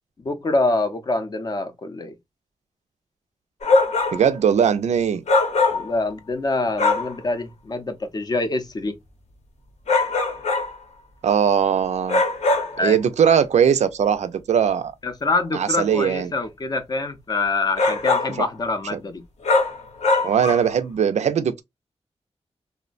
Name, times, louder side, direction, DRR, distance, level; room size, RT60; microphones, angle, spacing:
voice 1, 0.2-2.2 5.7-9.0 12.8-13.0 15.0-19.2, left 3 dB, 35° left, 0.5 m, -25 dB
sound 1, 3.6-4.3 5.3-6.0 6.8-7.2 9.9-10.7 12.1-12.8 17.8-18.4 19.4-20.7, left 3 dB, 80° left, 0.9 m, -21 dB
voice 2, 4.1-5.2 11.2-12.2 12.8-14.9 15.5-16.3 18.4-18.5 18.9-19.0 20.2-21.6, right 8 dB, 85° right, 0.4 m, -20 dB
3.0 x 2.1 x 2.4 m
wide cardioid pair, 155°, 11 cm